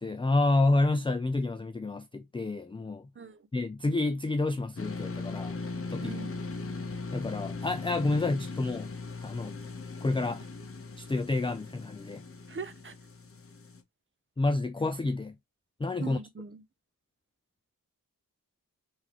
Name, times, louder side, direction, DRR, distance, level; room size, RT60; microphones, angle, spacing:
voice 1, 0.0-3.0 3.5-5.6 5.9-6.2 7.1-8.9 9.2-9.5 10.0-10.4 11.0-12.2 14.4-15.3 15.8-16.2, left 2 dB, 15° left, 0.3 m, -29 dB
voice 2, 3.2-3.5 6.0-6.3 12.5-12.9 16.0-16.6, right 5 dB, 35° right, 0.5 m, -41 dB
sound 1, 4.8-13.8, left 3 dB, 40° left, 0.7 m, -39 dB
3.6 x 3.3 x 2.9 m
wide cardioid pair, 80°, 34 cm